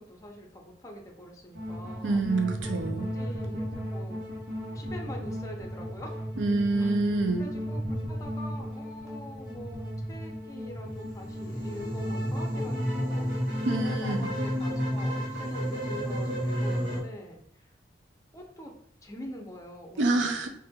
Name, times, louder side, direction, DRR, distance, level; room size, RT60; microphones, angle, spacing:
voice 1, 0.0-2.2 3.0-4.2 4.6-6.3 6.8-7.0 7.4-7.8 8.1-13.3 13.7-17.7 18.3-18.7 19.0-20.5, left 1 dB, 20° left, 1 dB, 0.6 m, -44 dB
sound 1, 1.5-17.0, equal, 70° right, 1.2 m, -33 dB
voice 2, 2.0-3.1 6.4-7.5 13.6-14.3 20.0-20.5, right 2 dB, 85° right, 5 dB, 0.5 m, -27 dB
4.2 x 2.6 x 2.3 m, 0.68 s
head